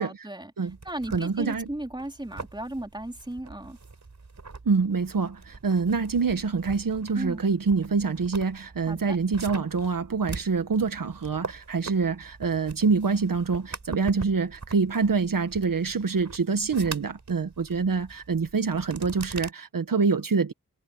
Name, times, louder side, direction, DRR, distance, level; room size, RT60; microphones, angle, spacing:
voice 1, 0.0-0.5 0.8-3.8 7.1-7.4 8.9-9.2, right 1 dB, 15° right, 3.5 m, -35 dB
sound 1, 0.7-19.5, right 3 dB, 50° right, 5.4 m, -43 dB
voice 2, 1.1-1.7 4.7-20.5, right 4 dB, 65° right, 1.8 m, -26 dB
cardioid pair, 45°, 35 cm